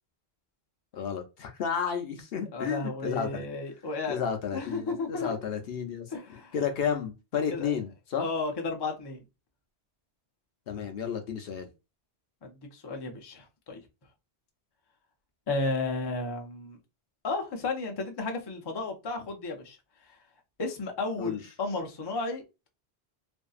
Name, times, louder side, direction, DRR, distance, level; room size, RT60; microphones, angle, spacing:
voice 1, 0.9-3.4 4.1-6.1 6.5-8.3 10.7-11.7 21.2-21.4, left 7 dB, 65° left, 0.8 m, -32 dB
voice 2, 2.5-4.2 4.5-5.4 6.1-6.5 7.5-7.7 8.2-9.2 12.4-13.8 15.5-16.8 17.2-19.8 20.6-22.7, left 3 dB, 35° left, 0.4 m, -33 dB
2.6 x 2.5 x 2.3 m
omnidirectional pair, 1.1 m